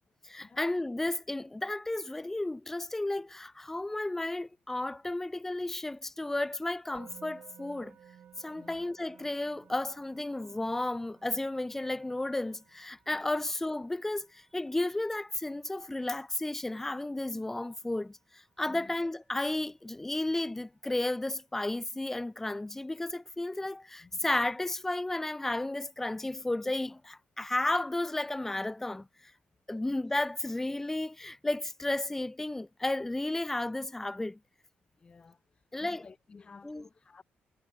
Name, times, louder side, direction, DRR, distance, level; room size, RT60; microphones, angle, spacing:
voice 1, 0.2-8.0 8.4-18.2 18.6-29.1 29.7-34.4 35.7-36.1 36.6-36.8, left 2 dB, 10° left, 0.4 m, -33 dB
Musical instrument, 6.9-18.1, right 9 dB, 55° right, 5.1 m, -59 dB
voice 2, 8.5-8.8 13.1-13.3 18.6-18.9 24.0-24.3 35.0-35.4 35.8-37.2, left 4 dB, 25° left, 2.6 m, -54 dB
cardioid pair, 165°, 4 cm